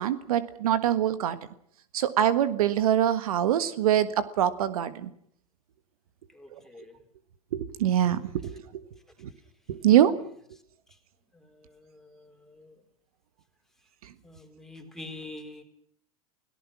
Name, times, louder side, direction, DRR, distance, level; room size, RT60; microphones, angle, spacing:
voice 1, 0.0-1.4 1.9-5.1 7.5-8.6 9.7-10.1, right 11 dB, 75° right, 13 dB, 1.5 m, -24 dB
voice 2, 6.3-7.0 11.8-12.7 14.2-15.6, left 2 dB, ahead, 3 dB, 4.3 m, -45 dB
29.5 x 18.0 x 6.1 m, 0.66 s
hypercardioid pair, 115°, 19 cm